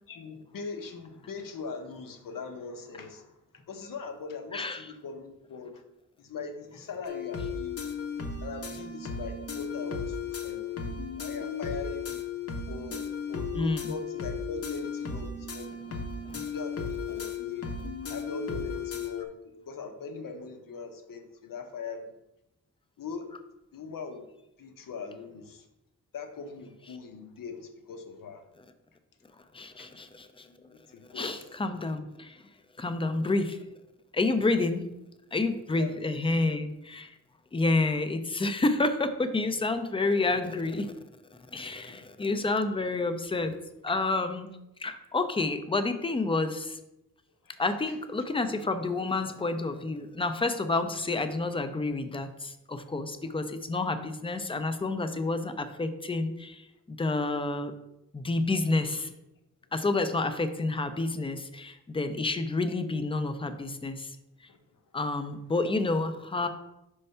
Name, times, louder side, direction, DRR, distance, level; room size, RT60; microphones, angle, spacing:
voice 1, 0.1-5.8 6.2-8.0 8.4-12.2 12.7-13.0 13.3-16.0 16.4-17.7 18.1-22.1 23.0-23.3 23.7-24.3 24.6-25.7 26.1-28.4 29.8-29.9 30.5-31.3 35.7-36.0 36.3-36.4 41.9-42.2 43.9-44.0 47.4-48.0 53.2-53.4 64.5-64.8, left 4 dB, 90° left, 5 dB, 0.8 m, -41 dB
sound 1, 7.1-19.3, left 5 dB, 50° left, 0.7 m, -35 dB
voice 2, 13.6-13.9 16.3-16.4 29.5-30.5 31.1-32.4 32.8-33.6 34.1-34.8 35.3-37.1 37.5-40.9 41.5-43.5 43.8-44.5 44.8-46.8 47.6-56.6 56.9-57.7 58.1-59.1 59.7-64.1 64.9-66.5, left 3 dB, 15° left, 9 dB, 0.4 m, -29 dB
5.4 x 3.3 x 5.4 m, 0.90 s
wide cardioid pair, 150°, 32 cm